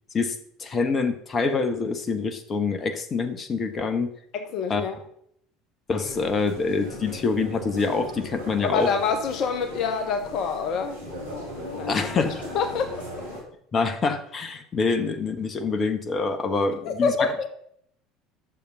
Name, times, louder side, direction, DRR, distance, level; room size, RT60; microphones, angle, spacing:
voice 1, 0.6-4.1 4.7-4.8 5.9-8.9 11.9-12.3 13.7-17.3, left 4 dB, 30° left, 8 dB, 1.3 m, -26 dB
voice 2, 4.3-5.0 8.6-11.0 11.7-12.3 12.5-13.0 16.8-17.5, left 5 dB, 45° left, 7 dB, 1.3 m, -26 dB
sound 1, 6.0-13.4, left 1 dB, 85° right, 3.6 m, -38 dB
11.0 x 7.1 x 5.6 m, 0.68 s
figure-of-eight pair, 65°, 0 cm